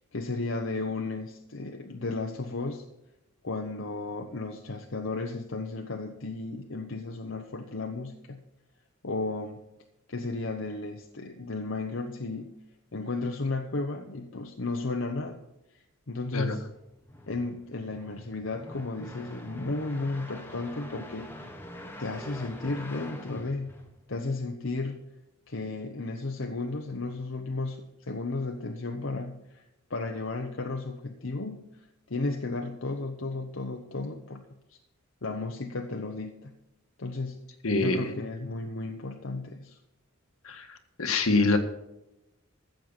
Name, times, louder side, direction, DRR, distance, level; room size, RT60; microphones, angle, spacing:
voice 1, 0.1-2.8 3.4-8.4 9.0-9.6 10.1-12.5 12.9-15.4 16.1-16.6 17.3-21.5 22.0-23.7 24.1-25.0 25.5-29.6 29.9-31.7 32.1-34.4 34.7-34.8 35.2-36.5 37.0-37.4 37.8-39.8, left 3 dB, 60° left, 3 dB, 0.9 m, -34 dB
sound 1, 16.7-24.3, equal, 10° left, 1.3 m, -45 dB
voice 2, 37.6-38.1 40.4-41.6, left 3 dB, 75° left, 6 dB, 1.7 m, -25 dB
14.5 x 7.7 x 5.7 m, 0.90 s
head